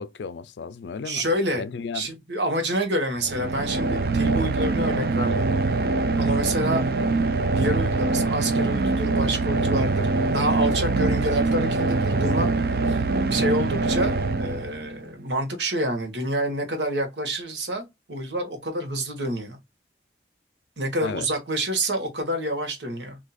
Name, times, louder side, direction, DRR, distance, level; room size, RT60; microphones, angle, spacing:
voice 1, 0.0-1.3 1.6-2.1 21.0-21.3, left 5 dB, 85° left, 0.4 m, -34 dB
voice 2, 1.0-1.7 1.9-5.5 6.2-6.8 7.6-13.0 13.3-19.6 20.8-23.2, right 1 dB, 85° right, 1.3 m, -28 dB
sound 1, 3.2-15.1, right 3 dB, 55° right, 0.4 m, -23 dB
4.1 x 2.7 x 2.3 m
head